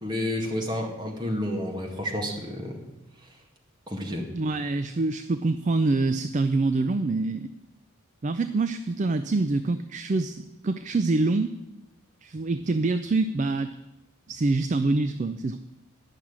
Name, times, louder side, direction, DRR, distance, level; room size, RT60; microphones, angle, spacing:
voice 1, 0.0-2.8 3.9-4.2, left 1 dB, 20° right, 0 dB, 2.0 m, -30 dB
voice 2, 4.3-7.5 8.2-11.6 12.2-13.7 14.3-15.6, right 3 dB, 35° right, 11 dB, 0.4 m, -25 dB
11.5 x 6.0 x 8.7 m, 0.98 s
head